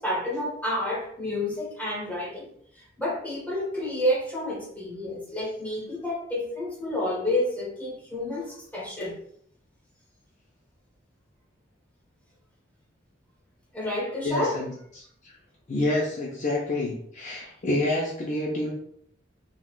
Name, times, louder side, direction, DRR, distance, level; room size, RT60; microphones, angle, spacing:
voice 1, 0.0-2.5 3.0-9.2 13.7-14.6, left 1 dB, 10° left, -5 dB, 1.1 m, -29 dB
voice 2, 14.2-14.7 15.7-18.7, left 1 dB, 40° left, -4 dB, 0.5 m, -27 dB
3.5 x 2.3 x 2.3 m, 0.67 s
head